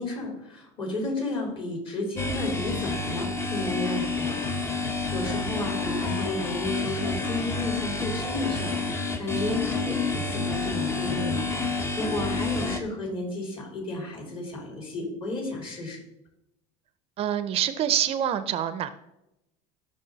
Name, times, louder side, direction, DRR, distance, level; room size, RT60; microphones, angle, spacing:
voice 1, 0.0-16.0, left 2 dB, 35° left, -1 dB, 4.0 m, -33 dB
sound 1, 2.2-12.8, left 3 dB, 15° left, 0.9 m, -29 dB
voice 2, 17.2-18.9, right 10 dB, 40° right, 13 dB, 0.6 m, -26 dB
17.5 x 6.3 x 4.1 m, 0.88 s
cardioid pair, 150°, 16 cm